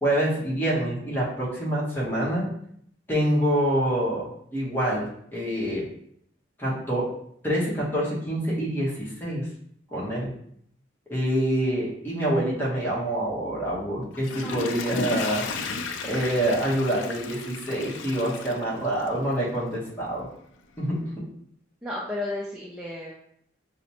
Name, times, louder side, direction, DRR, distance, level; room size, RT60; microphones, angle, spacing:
voice 1, 0.0-2.5 3.1-4.3 4.5-5.9 6.6-7.1 7.4-9.5 9.9-10.3 11.1-15.5 16.0-20.3 20.8-21.0, right 1 dB, 10° left, -6 dB, 1.0 m, -26 dB
Water / Toilet flush, 14.0-19.3 19.8-19.9, left 4 dB, 90° left, 0.4 m, -34 dB
voice 2, 14.4-14.9 21.8-23.1, left 2 dB, 5° right, -5 dB, 0.4 m, -33 dB
4.9 x 2.1 x 2.8 m, 0.68 s
head